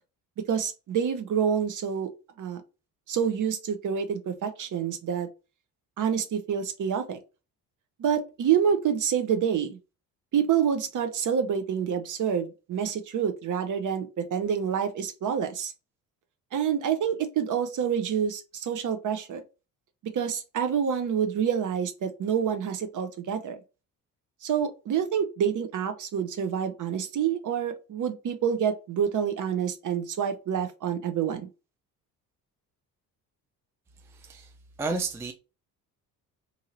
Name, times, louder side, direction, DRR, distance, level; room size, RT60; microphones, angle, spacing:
voice 1, 0.5-2.1 2.4-2.6 3.1-5.3 6.0-7.2 8.0-9.8 10.3-15.7 16.5-19.4 20.1-23.6 24.4-31.5, right 8 dB, 40° right, 0.7 m, -27 dB
voice 2, 34.1-34.5 34.8-35.3, right 3 dB, 5° right, 0.4 m, -31 dB
2.8 x 2.7 x 2.6 m
hypercardioid pair, 55°, 46 cm